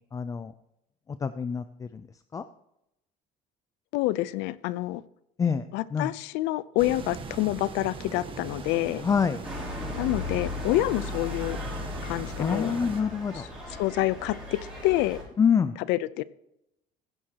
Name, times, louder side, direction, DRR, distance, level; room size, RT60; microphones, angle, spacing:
voice 1, 0.1-0.5 1.2-1.9 2.3-2.4 5.4-5.6 5.9-6.1 9.0-9.4 12.4-13.4 15.4-15.8, left 6 dB, 20° left, 11 dB, 0.4 m, -25 dB
voice 2, 3.9-5.0 5.7-9.0 10.0-11.6 12.0-12.8 13.3-15.2 15.8-16.2, left 16 dB, 85° left, 17 dB, 0.6 m, -28 dB
sound 1, 6.8-13.0, right 4 dB, 30° right, 1.4 m, -40 dB
sound 2, 9.4-15.2, left 2 dB, 5° right, 5.4 m, -36 dB
15.5 x 11.0 x 2.9 m, 0.83 s
cardioid pair, 160°, 18 cm